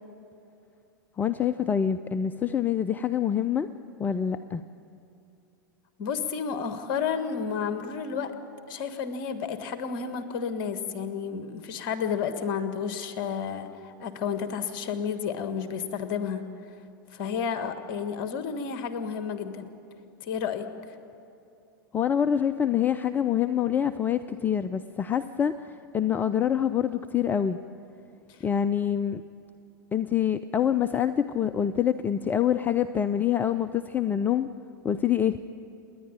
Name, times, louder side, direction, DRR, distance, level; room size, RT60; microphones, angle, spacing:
voice 1, 1.2-3.7 4.0-4.6 21.9-25.5 25.9-27.6 28.4-29.2 29.9-34.5 34.8-35.4, left 9 dB, 15° left, 13 dB, 0.4 m, -25 dB
voice 2, 6.0-8.3 8.7-16.4 17.1-19.7 20.2-20.7 28.3-28.4, left 6 dB, 45° left, 9 dB, 1.5 m, -31 dB
29.0 x 10.5 x 9.0 m, 2.7 s
figure-of-eight pair, 90°, 11 cm